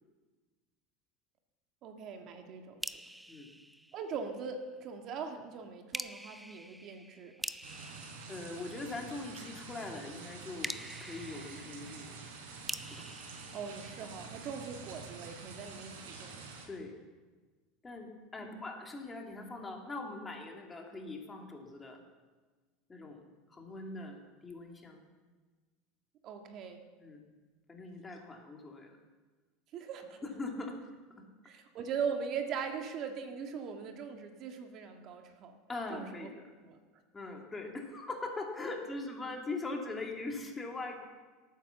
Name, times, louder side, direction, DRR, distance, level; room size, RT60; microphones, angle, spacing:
voice 1, 1.8-2.8 3.9-7.3 13.5-16.4 18.4-18.7 26.2-26.8 29.7-30.2 31.4-35.6 35.9-36.3 36.6-36.8 38.7-38.8, right 6 dB, 45° right, 5 dB, 1.7 m, -40 dB
sound 1, 2.8-4.5 5.9-9.3 10.6-14.5, right 1 dB, 5° right, 0.5 m, -45 dB
sound 2, 7.6-16.7, right 4 dB, 85° right, 4.0 m, -47 dB
voice 2, 8.3-10.7 11.0-12.2 12.9-13.1 14.0-14.1 16.7-16.9 17.8-22.0 22.9-23.2 23.5-25.0 27.0-27.2 27.7-28.9 30.2-30.8 31.2-31.3 35.7-36.4 37.1-41.1, left 3 dB, 15° left, 2 dB, 2.4 m, -41 dB
18.5 x 9.1 x 7.1 m, 1.4 s
supercardioid pair, 125°, 0 cm